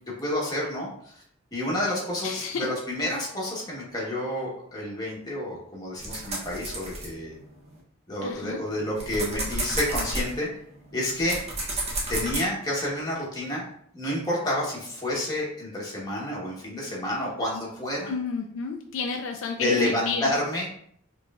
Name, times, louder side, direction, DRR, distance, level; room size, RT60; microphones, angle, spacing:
voice 1, 0.2-1.2 1.5-7.3 8.1-10.5 10.9-11.4 12.1-18.1 19.6-20.7, left 1 dB, 20° left, -5 dB, 1.2 m, -29 dB
voice 2, 2.2-2.7 8.2-8.6 18.1-20.3, left 5 dB, 65° left, 4 dB, 0.4 m, -31 dB
sound 1, 6.0-7.8 8.3-12.4, right 2 dB, 30° right, 0.8 m, -32 dB
4.5 x 3.2 x 2.4 m, 0.64 s
head